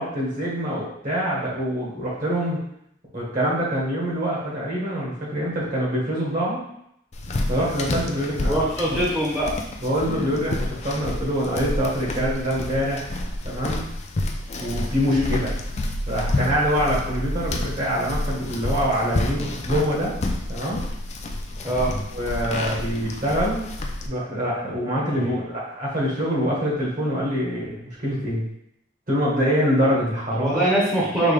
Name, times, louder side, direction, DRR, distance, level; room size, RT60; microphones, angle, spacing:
voice 1, 0.0-2.6 3.1-6.6 7.5-8.6 8.8-9.0 9.8-13.2 13.4-13.8 14.6-15.5 16.1-20.1 20.5-20.8 22.1-23.7 24.0-28.4 29.1-30.7, equal, 50° right, -5 dB, 1.6 m, -25 dB
sound 1, 7.1-24.1, left 1 dB, 35° left, 0.4 m, -29 dB
voice 2, 8.5-9.5 15.1-15.4 21.6-22.0 25.1-25.4 30.4-31.3, right 1 dB, 15° right, -7 dB, 0.8 m, -23 dB
5.0 x 2.8 x 3.3 m, 0.75 s
head